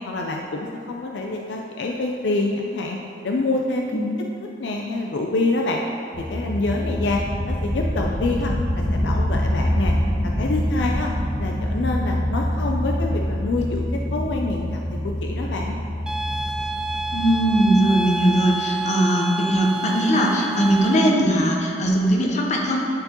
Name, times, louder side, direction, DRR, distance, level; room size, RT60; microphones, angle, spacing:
voice 1, 0.1-3.0 3.2-4.0 4.6-5.8 6.2-9.9 10.2-11.1 11.4-15.7, left 2 dB, 75° left, 1 dB, 0.4 m, -26 dB
sound 1, 6.1-18.5, equal, 20° left, 1.4 m, -25 dB
sound 2, 16.1-21.1, right 2 dB, 5° right, 0.3 m, -28 dB
voice 2, 17.1-22.8, right 1 dB, 40° left, -1 dB, 0.9 m, -20 dB
10.5 x 4.5 x 2.9 m, 2.6 s
head